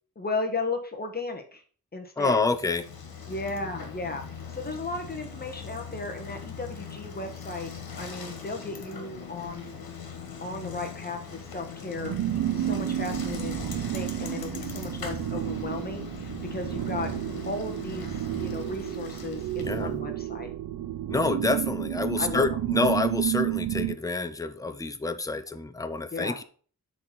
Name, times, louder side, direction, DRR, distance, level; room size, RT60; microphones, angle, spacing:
voice 1, 0.2-1.6 1.9-2.4 3.3-4.2 4.5-7.7 8.0-9.8 10.4-12.1 12.6-17.1 17.5-18.1 18.4-20.5 22.2-22.7 26.1-26.4, left 3 dB, 25° left, 4 dB, 1.2 m, -35 dB
voice 2, 2.2-2.8 19.6-19.9 21.1-26.4, left 3 dB, 10° left, 10 dB, 0.5 m, -27 dB
Bicycle, 2.4-19.9, left 6 dB, 80° left, 1.7 m, -41 dB
sound 1, 11.9-24.0, right 13 dB, 80° right, 0.6 m, -31 dB
6.7 x 4.1 x 6.0 m, 0.43 s
wide cardioid pair, 170°, 35 cm